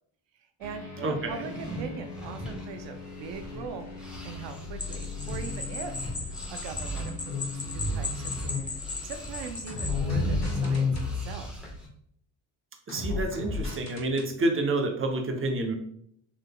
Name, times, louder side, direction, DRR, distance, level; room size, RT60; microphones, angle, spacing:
voice 1, 0.3-3.9 4.2-6.1 6.5-8.6 9.0-11.7, right 6 dB, 70° right, 7 dB, 0.5 m, -41 dB
sound 1, 0.6-9.1 9.7-11.1 12.9-14.3, left 3 dB, 35° left, 1.5 m, -39 dB
voice 2, 1.0-1.3 12.9-15.7, right 2 dB, 30° right, 3 dB, 0.7 m, -28 dB
sound 2, 1.3-3.7 4.0-11.9, left 2 dB, ahead, 1.2 m, -33 dB
sound 3, 4.8-10.0, left 3 dB, 15° left, 0.7 m, -38 dB
3.8 x 3.2 x 2.2 m, 0.68 s
cardioid pair, 70°, 45 cm